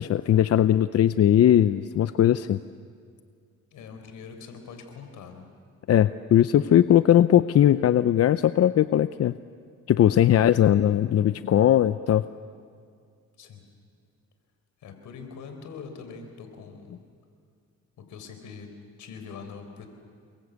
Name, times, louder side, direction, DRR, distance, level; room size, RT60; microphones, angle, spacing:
voice 1, 0.0-2.6 5.9-9.3 9.9-12.2, left 11 dB, 55° left, 13 dB, 0.6 m, -19 dB
voice 2, 3.7-5.5 13.4-13.6 14.8-17.0 18.0-19.9, left 5 dB, 80° left, 6 dB, 4.4 m, -43 dB
29.0 x 22.5 x 8.3 m, 2.2 s
cardioid pair, 90°, 30 cm